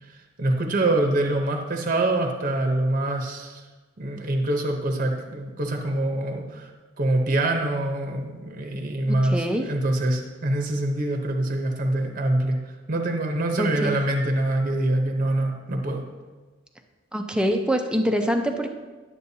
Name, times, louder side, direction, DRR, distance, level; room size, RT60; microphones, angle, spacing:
voice 1, 0.0-3.6 4.0-6.7 7.0-12.6 12.9-16.0, right 1 dB, 45° right, 3 dB, 0.8 m, -25 dB
voice 2, 9.1-9.7 13.6-14.0 17.1-18.7, equal, 5° right, 4 dB, 0.6 m, -24 dB
11.0 x 7.6 x 2.8 m, 1.3 s
head